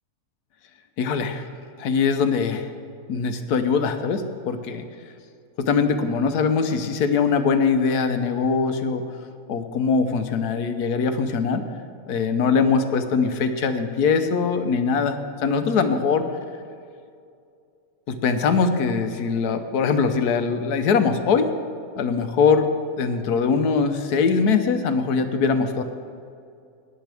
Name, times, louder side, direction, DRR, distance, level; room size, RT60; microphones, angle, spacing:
voice 1, 1.0-1.5 1.8-2.7 3.1-4.8 5.6-9.0 9.5-11.6 12.1-16.3 18.1-21.5 22.0-22.7 23.0-25.8, left 5 dB, 85° left, 8 dB, 1.3 m, -22 dB
16.5 x 10.0 x 3.4 m, 2.4 s
omnidirectional pair, 1.6 m